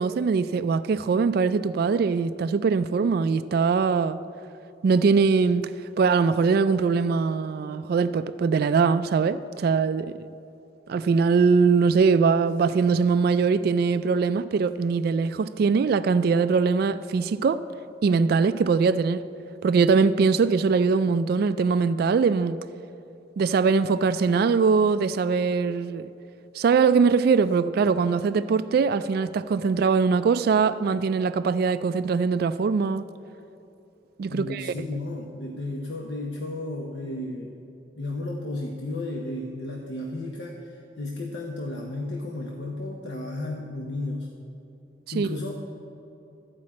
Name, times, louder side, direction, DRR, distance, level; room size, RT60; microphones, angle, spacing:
voice 1, 0.0-4.2 4.8-5.7 6.0-10.3 10.9-17.6 18.0-19.3 19.6-22.6 23.4-26.1 26.5-33.0 34.2-34.7 45.2-45.4, right 5 dB, 55° right, 0.3 m, -22 dB
voice 2, 34.3-37.5 38.0-44.3 45.1-45.5, left 2 dB, 70° left, 1.0 m, -33 dB
13.5 x 5.2 x 8.5 m
head